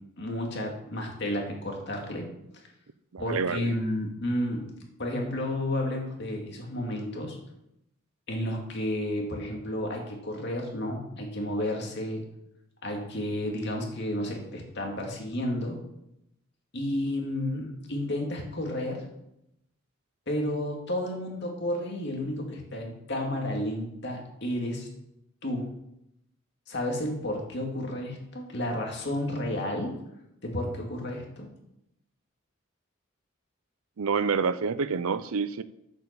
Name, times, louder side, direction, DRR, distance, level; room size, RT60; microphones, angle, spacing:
voice 1, 0.2-2.3 3.2-4.7 5.0-7.4 8.3-12.2 12.8-15.8 16.7-19.1 20.3-24.9 25.4-25.7 26.7-30.0 30.4-31.5, left 1 dB, 55° left, 1 dB, 2.3 m, -31 dB
voice 2, 3.1-3.7 34.0-35.6, right 5 dB, 85° right, 15 dB, 0.6 m, -28 dB
7.9 x 7.2 x 6.9 m, 0.82 s
head